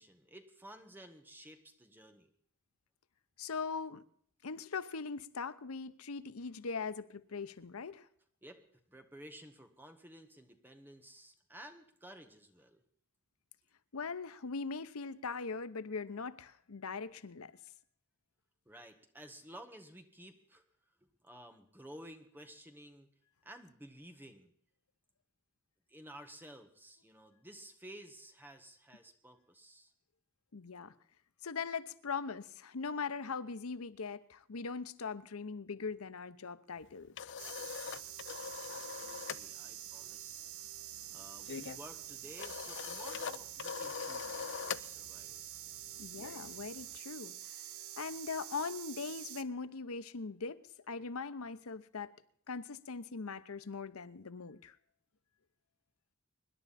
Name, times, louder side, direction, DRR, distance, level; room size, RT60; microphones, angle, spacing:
voice 1, 0.0-2.3 8.4-12.8 18.6-20.6 21.0-23.1 23.4-24.5 25.9-29.9 38.7-40.7 41.1-45.6, right 1 dB, 10° right, 1.6 m, -54 dB
voice 2, 3.4-4.0 4.4-8.1 13.9-17.5 30.5-30.9 31.4-37.1 46.0-47.6 48.0-52.1 52.5-54.8, left 4 dB, 90° left, 0.8 m, -41 dB
sound 1, 36.8-39.5 39.7-40.0 40.3-47.0, left 7 dB, 55° left, 0.5 m, -43 dB
sound 2, 37.4-49.4, right 12 dB, 85° right, 0.8 m, -47 dB
25.0 x 11.0 x 4.2 m
head